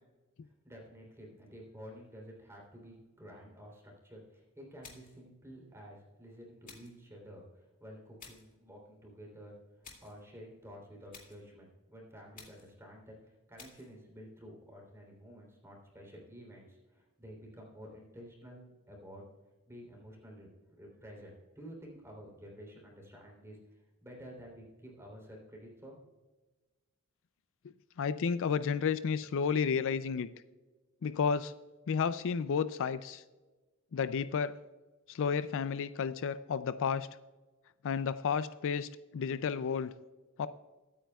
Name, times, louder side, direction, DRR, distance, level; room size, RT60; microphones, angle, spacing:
voice 1, 0.4-19.2 19.7-20.5 20.8-25.9, equal, 10° right, -1 dB, 3.3 m, -51 dB
sound 1, 4.8-5.3 6.6-7.0 8.2-8.6 9.8-10.2 11.1-11.5 12.3-12.8 13.6-13.9, left 5 dB, 40° left, 2.3 m, -54 dB
voice 2, 28.0-30.3 31.0-31.5 31.9-33.2 33.9-34.6 35.1-37.1 37.8-39.9 40.4-40.5, left 6 dB, 60° left, 13 dB, 0.4 m, -32 dB
22.5 x 8.9 x 2.3 m, 1.2 s
head